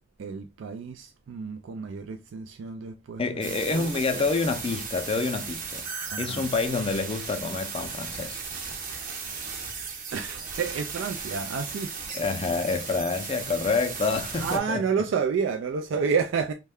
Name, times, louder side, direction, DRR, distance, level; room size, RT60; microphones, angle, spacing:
voice 1, 0.2-4.2 6.1-6.4 10.1-11.9 14.4-16.5, right 6 dB, 80° right, 0.3 m, -30 dB
voice 2, 3.2-5.8 6.2-8.4 12.1-15.0, left 4 dB, 30° left, 0.4 m, -28 dB
sound 1, 3.4-14.6, right 5 dB, 45° right, 0.7 m, -36 dB
3.2 x 2.2 x 3.4 m
head